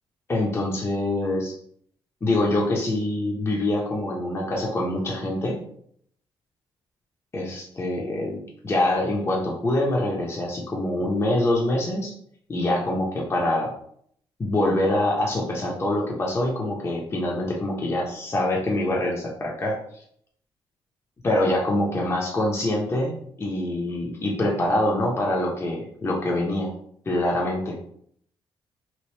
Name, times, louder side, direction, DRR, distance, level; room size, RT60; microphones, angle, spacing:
voice 1, 0.3-1.6 2.2-5.6 7.3-12.1 12.5-13.7 14.4-19.8 21.2-26.7 27.1-27.8, left 1 dB, 25° left, -2 dB, 0.7 m, -25 dB
2.9 x 2.5 x 3.2 m, 0.66 s
cardioid pair, 100°, 10 cm